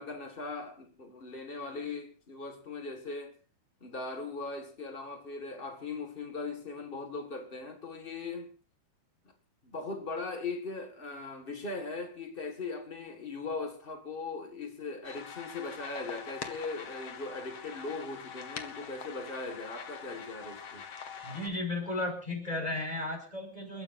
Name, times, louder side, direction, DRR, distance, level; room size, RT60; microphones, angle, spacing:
voice 1, 0.0-3.3 3.8-8.5 9.6-20.9, left 3 dB, 75° left, 0.5 m, -39 dB
sound 1, 15.0-21.5, left 6 dB, 60° left, 1.4 m, -44 dB
voice 2, 21.2-23.8, left 2 dB, 10° left, 5.4 m, -34 dB
28.5 x 14.0 x 2.6 m
omnidirectional pair, 4.3 m